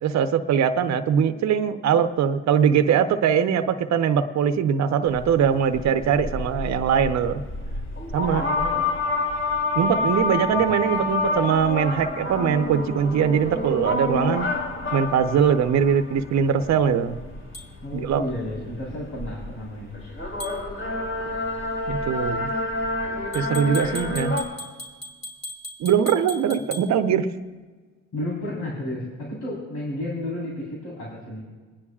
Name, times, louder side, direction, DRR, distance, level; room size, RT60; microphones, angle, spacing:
voice 1, 0.0-7.4 8.1-8.4 9.8-14.5 14.9-17.2 17.9-18.2 21.9-22.5 23.3-24.4 25.8-27.3, right 7 dB, 65° right, 8 dB, 0.8 m, -21 dB
sound 1, 5.1-24.4, left 2 dB, 40° left, 3.4 m, -29 dB
voice 2, 8.4-9.0 10.6-10.7 17.8-19.9 28.1-31.4, left 1 dB, 90° left, -5 dB, 4.1 m, -32 dB
sound 2, 17.5-17.7 20.4-20.6 23.3-26.9, left 1 dB, 20° left, 2.5 m, -38 dB
28.5 x 9.9 x 2.4 m, 1.4 s
cardioid pair, 90°, 30 cm